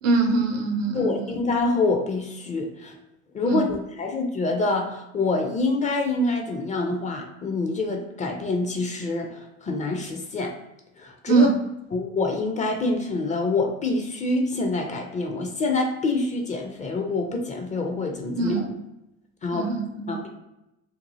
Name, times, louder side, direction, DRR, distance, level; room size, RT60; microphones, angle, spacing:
voice 1, 0.0-1.3 3.5-3.7 11.3-11.6 18.4-18.7 19.5-20.2, right 3 dB, 70° right, 4 dB, 0.7 m, -24 dB
voice 2, 0.9-3.0 3.3-10.5 11.0-11.5 11.9-18.6 19.4-19.7 20.1-20.3, left 3 dB, 20° left, 2 dB, 0.4 m, -26 dB
2.6 x 2.5 x 2.6 m, 0.90 s
figure-of-eight pair, 65°, 39 cm